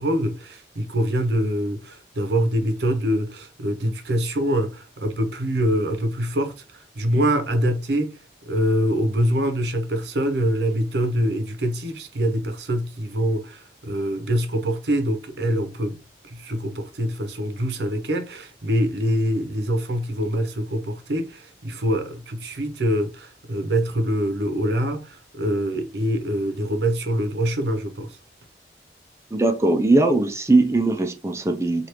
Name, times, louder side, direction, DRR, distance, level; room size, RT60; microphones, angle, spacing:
voice 1, 0.0-8.1 8.5-16.0 16.2-28.2, equal, 75° right, 0.7 m, -24 dB
voice 2, 29.3-31.9, right 2 dB, 15° right, 0.4 m, -20 dB
3.3 x 2.4 x 2.9 m
head